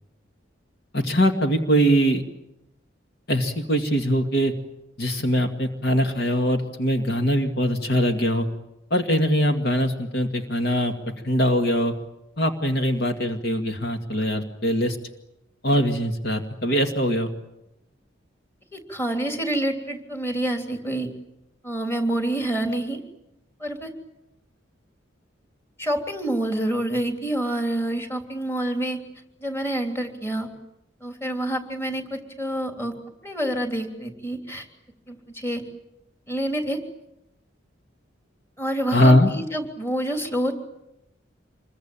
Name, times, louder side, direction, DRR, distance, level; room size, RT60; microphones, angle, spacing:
voice 1, 0.9-2.2 3.3-4.5 5.0-8.5 8.9-10.9 11.2-11.9 12.4-15.0 15.6-17.3 38.9-39.3, equal, 55° left, 5 dB, 2.2 m, -22 dB
voice 2, 18.7-21.1 21.6-23.0 23.6-23.9 25.8-29.0 29.4-30.5 31.0-32.9 33.2-34.6 35.1-35.6 36.3-36.8 38.6-40.5, right 1 dB, 15° left, 4 dB, 3.3 m, -27 dB
27.0 x 22.5 x 8.9 m, 0.88 s
head